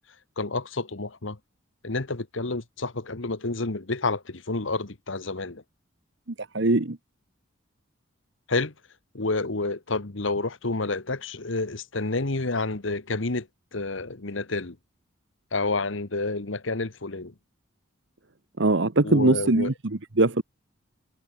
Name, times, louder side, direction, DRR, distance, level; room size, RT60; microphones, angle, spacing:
voice 1, 0.4-1.4 1.8-5.6 8.5-8.7 9.1-13.5 13.7-14.8 15.5-17.3 19.0-19.7, left 3 dB, 65° left, 1.4 m, -29 dB
voice 2, 6.5-7.0 18.6-20.4, right 2 dB, 60° right, 1.2 m, -21 dB
head